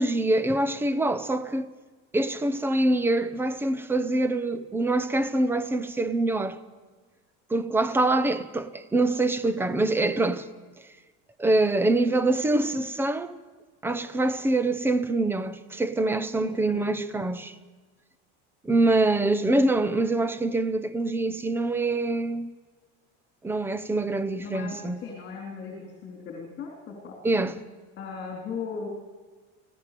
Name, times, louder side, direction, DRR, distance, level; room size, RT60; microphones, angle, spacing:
voice 1, 0.0-1.7 2.1-6.6 7.5-10.4 11.4-13.4 13.8-17.5 18.6-22.5 23.4-25.0 27.2-27.6, right 2 dB, 5° right, 0.8 m, -25 dB
voice 2, 16.4-16.9 24.4-27.1 28.0-28.9, left 5 dB, 30° left, 3.7 m, -37 dB
25.0 x 16.5 x 6.8 m
cardioid pair, 165°, 35 cm